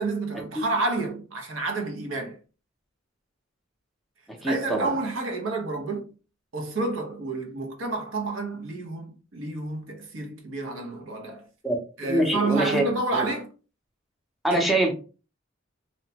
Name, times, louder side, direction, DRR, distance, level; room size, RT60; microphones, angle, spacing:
voice 1, 0.0-2.4 4.4-6.1 6.5-11.5 12.0-13.5 14.5-14.7, right 3 dB, 85° right, 0.7 m, -29 dB
voice 2, 4.3-4.9 11.6-11.8 12.0-12.9 13.1-13.3 14.4-14.9, right 1 dB, ahead, 0.5 m, -24 dB
2.8 x 2.1 x 2.7 m
head